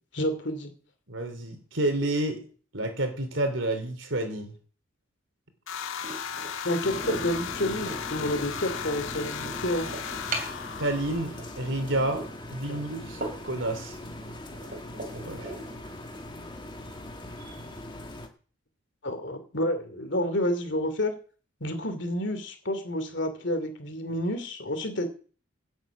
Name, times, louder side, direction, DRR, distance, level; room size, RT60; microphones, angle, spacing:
voice 1, 0.1-0.7 6.6-9.9 12.7-12.8 19.0-21.1 21.6-25.1, left 1 dB, 60° left, 8 dB, 2.8 m, -29 dB
voice 2, 1.1-2.4 2.7-4.5 10.8-12.2 12.5-14.0 15.3-15.5, right 1 dB, 70° right, 7 dB, 3.2 m, -29 dB
sound 1, 5.7-11.8, left 7 dB, 75° left, 1.5 m, -36 dB
sound 2, 6.0-17.8, right 2 dB, 40° right, 3.3 m, -41 dB
sound 3, 6.8-18.3, left 1 dB, 20° left, 1.6 m, -41 dB
17.5 x 8.1 x 6.1 m, 0.41 s
head